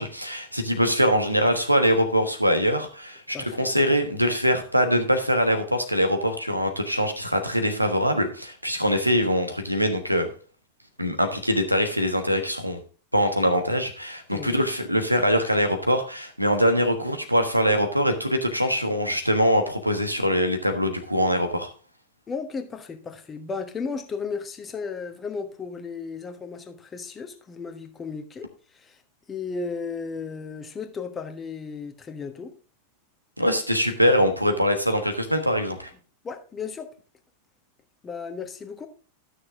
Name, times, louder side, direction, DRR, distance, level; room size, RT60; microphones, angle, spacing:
voice 1, 0.0-10.3 11.0-12.8 13.1-21.7 33.4-35.9, equal, 90° right, 1.2 m, -23 dB
voice 2, 3.3-3.7 14.3-14.6 22.3-28.5 28.7-29.0 29.3-32.5 36.2-36.9 38.0-38.9, left 5 dB, 20° left, 1.2 m, -34 dB
12.5 x 6.4 x 3.6 m
figure-of-eight pair, 90°, 0 cm